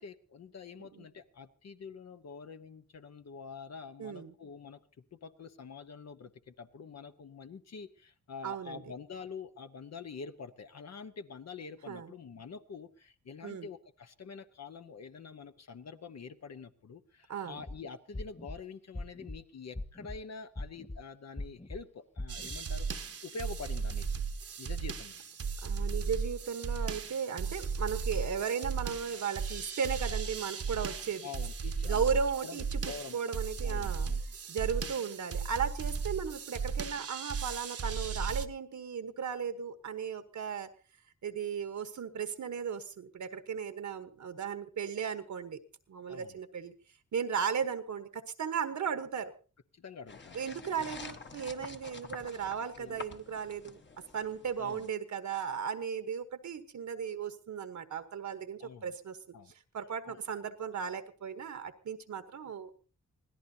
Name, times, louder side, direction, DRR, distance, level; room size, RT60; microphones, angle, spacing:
voice 1, 0.0-4.8 5.1-24.0 24.6-25.2 31.2-32.0 32.4-33.2 33.6-34.2 46.1-46.4 49.7-50.4 52.8-53.2 54.6-54.9 58.6-58.9 59.3-59.5 60.1-60.2, left 5 dB, 60° left, 8 dB, 1.0 m, -46 dB
voice 2, 4.0-4.3 8.4-8.8 11.9-12.1 13.4-13.7 17.3-17.6 25.6-31.3 31.8-32.8 33.1-34.1 34.5-40.7 41.2-45.6 45.9-46.7 47.1-49.3 50.3-53.8 54.1-59.2 59.7-62.7, right 7 dB, 70° right, 10 dB, 1.3 m, -36 dB
sound 1, 17.5-17.8 18.1-18.6 18.9-19.4 19.7-20.2 20.6-21.0 21.4-21.8 22.2-22.6, left 2 dB, 20° left, 1.6 m, -40 dB
sound 2, 22.3-38.5, right 5 dB, 50° right, 1.0 m, -36 dB
sound 3, 50.1-54.9, left 3 dB, 40° left, 1.3 m, -48 dB
25.0 x 16.5 x 2.8 m, 0.37 s
cardioid pair, 85°, 30 cm